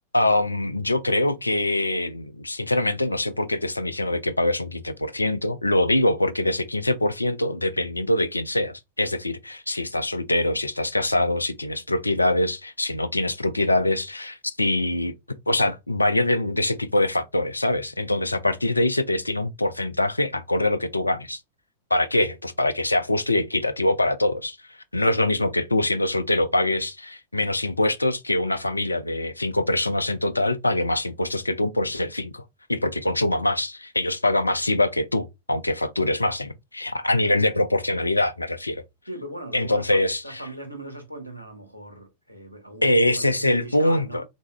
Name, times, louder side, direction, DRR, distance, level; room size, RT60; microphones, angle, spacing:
voice 1, 0.1-15.1 15.5-21.4 21.9-32.4 32.7-38.8 39.5-40.4 42.8-44.2, left 1 dB, 85° left, 0.4 m, -24 dB
voice 2, 39.1-44.2, right 1 dB, 90° right, 1.0 m, -39 dB
3.6 x 2.7 x 3.0 m
figure-of-eight pair, 90°, 0 cm